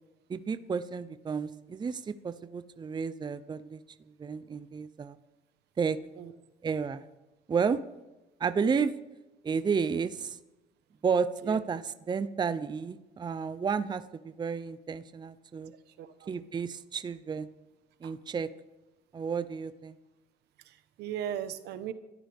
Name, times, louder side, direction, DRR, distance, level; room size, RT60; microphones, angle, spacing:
voice 1, 0.3-5.2 5.8-6.0 6.6-7.1 7.5-7.8 8.4-8.9 9.4-10.4 11.0-15.7 16.3-17.5 18.0-18.5 19.1-20.0, right 6 dB, 25° right, 12 dB, 0.6 m, -31 dB
voice 2, 16.0-16.4 18.0-18.1 20.6-21.9, right 10 dB, 80° right, 11 dB, 1.2 m, -38 dB
27.0 x 13.0 x 3.6 m, 1.0 s
cardioid pair, 110°, 17 cm